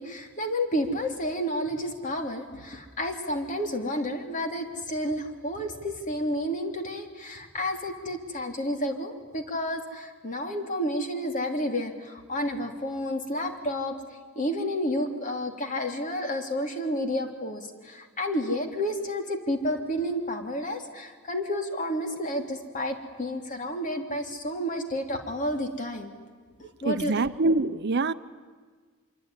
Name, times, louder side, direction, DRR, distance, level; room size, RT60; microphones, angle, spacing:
voice 1, 0.0-13.9 14.3-26.1 26.6-27.3, equal, 40° left, 3.1 m, -30 dB
voice 2, 26.8-28.1, right 3 dB, 55° right, 0.8 m, -25 dB
25.0 x 23.5 x 9.9 m
head